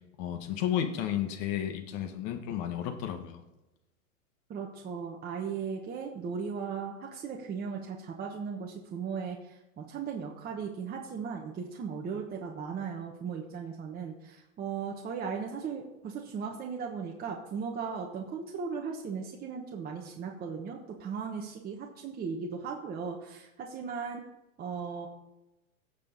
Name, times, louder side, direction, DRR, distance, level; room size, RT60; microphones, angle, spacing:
voice 1, 0.2-3.4, left 10 dB, 40° left, 7 dB, 1.5 m, -32 dB
voice 2, 4.5-24.2 24.6-25.1, right 6 dB, 20° right, 0 dB, 1.2 m, -37 dB
16.5 x 6.8 x 4.1 m, 0.99 s
hypercardioid pair, 120°, 42 cm